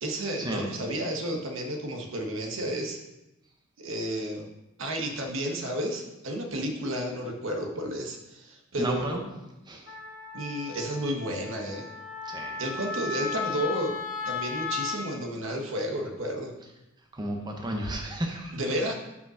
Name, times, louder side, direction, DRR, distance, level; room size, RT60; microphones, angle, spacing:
voice 1, 0.0-3.0 3.8-4.5 4.8-9.1 10.3-11.9 12.6-14.0 14.2-16.5 18.5-18.9, equal, 65° right, 3 dB, 1.1 m, -32 dB
voice 2, 8.8-9.2 9.7-9.9 12.3-12.5 17.1-18.6, right 1 dB, 20° right, 2 dB, 0.8 m, -32 dB
Wind instrument woodwind instrument, 9.9-15.0, left 5 dB, 70° left, 1.9 m, -35 dB
5.6 x 5.2 x 6.2 m, 0.98 s
head